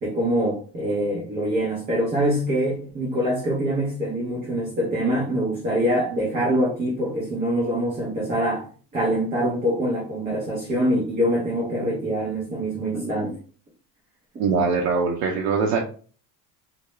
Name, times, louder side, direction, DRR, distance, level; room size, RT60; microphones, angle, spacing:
voice 1, 0.0-8.7 8.9-13.3, right 1 dB, 20° right, -6 dB, 0.6 m, -24 dB
voice 2, 14.4-15.8, right 5 dB, 90° right, 1 dB, 0.5 m, -22 dB
2.2 x 2.0 x 3.0 m, 0.41 s
cardioid pair, 175°, 38 cm